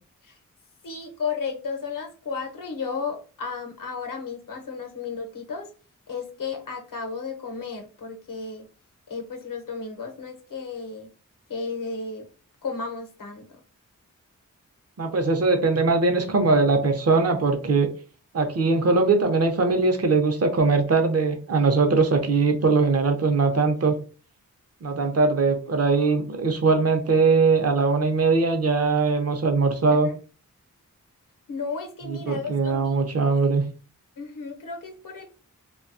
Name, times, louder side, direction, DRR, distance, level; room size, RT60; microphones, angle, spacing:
voice 1, 0.8-5.7 6.1-8.7 9.1-11.1 11.5-12.3 12.6-13.5 30.0-30.1 31.5-33.3 34.2-35.2, left 5 dB, 85° left, 3 dB, 0.7 m, -33 dB
voice 2, 15.0-17.9 18.3-24.0 24.8-30.1 32.1-33.6, right 4 dB, 50° right, 5 dB, 0.6 m, -21 dB
2.6 x 2.2 x 2.5 m, 0.37 s
wide cardioid pair, 120°, 32 cm